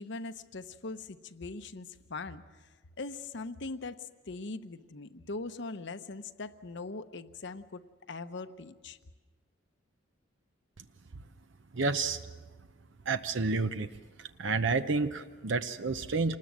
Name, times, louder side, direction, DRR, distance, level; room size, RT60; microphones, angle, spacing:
voice 1, 0.0-2.4 3.0-7.8 8.1-9.0, left 3 dB, 65° left, 11 dB, 0.9 m, -41 dB
voice 2, 11.7-12.2 13.1-13.9 14.2-16.4, right 3 dB, 65° right, 10 dB, 0.8 m, -30 dB
26.5 x 20.0 x 7.5 m, 1.3 s
head